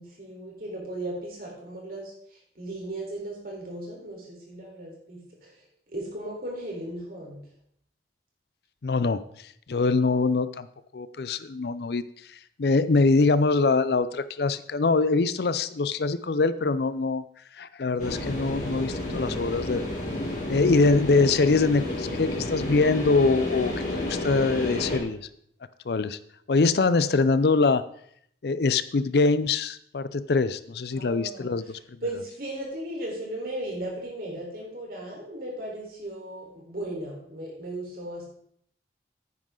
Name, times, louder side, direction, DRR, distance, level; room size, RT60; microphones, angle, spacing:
voice 1, 0.0-2.1 2.6-5.5 5.9-7.4 20.5-20.8 31.0-31.5 32.0-38.2, right 1 dB, 55° right, -2 dB, 3.9 m, -36 dB
voice 2, 8.8-9.2 9.7-10.7 10.9-12.0 12.6-17.2 17.6-19.8 20.5-25.2 25.9-26.2 26.5-27.8 28.4-31.8, left 3 dB, 60° left, 14 dB, 0.5 m, -23 dB
sound 1, 18.0-25.0, left 1 dB, 45° left, 2.7 m, -31 dB
9.9 x 9.5 x 3.8 m, 0.67 s
head